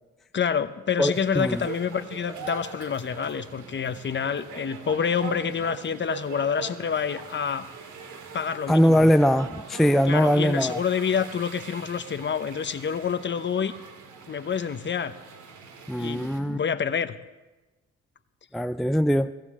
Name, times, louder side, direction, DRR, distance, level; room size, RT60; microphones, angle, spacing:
voice 1, 0.3-7.7 8.3-9.1 10.1-13.7 14.3-15.1 16.0-17.2, left 7 dB, 40° left, 0.9 m, -28 dB
voice 2, 1.0-1.6 8.7-10.8 15.9-16.6 18.5-19.3, equal, ahead, 0.4 m, -21 dB
sound 1, 1.1-16.4, right 5 dB, 80° right, 2.1 m, -42 dB
22.0 x 16.0 x 3.7 m
cardioid pair, 90°, 30 cm